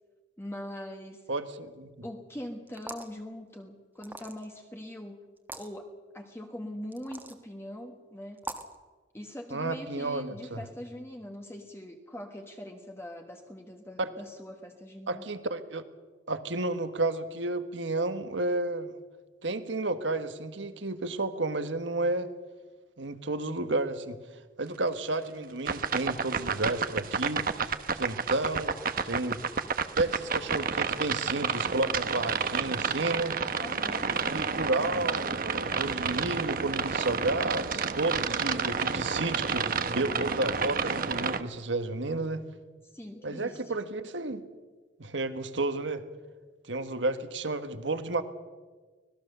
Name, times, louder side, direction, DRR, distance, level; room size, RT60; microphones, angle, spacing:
voice 1, 0.4-1.3 2.0-5.3 5.5-8.5 9.1-15.3 33.6-34.1 42.9-43.7, left 1 dB, 15° left, 3 dB, 1.3 m, -42 dB
voice 2, 1.3-1.9 9.5-10.6 14.0-14.1 15.1-15.8 16.3-18.9 19.4-22.3 23.0-24.2 24.6-27.5 28.0-28.8 29.0-29.4 29.9-33.4 34.3-42.4 43.2-44.4 45.0-46.0 46.7-48.2, right 2 dB, 75° right, 10 dB, 1.5 m, -31 dB
sound 1, 2.7-3.2 4.0-4.6 5.4-5.7 6.9-7.4 8.4-8.8, right 2 dB, 10° right, 1.3 m, -41 dB
sound 2, 25.7-41.4, right 5 dB, 50° right, 1.0 m, -30 dB
25.0 x 18.0 x 6.8 m, 1.4 s
head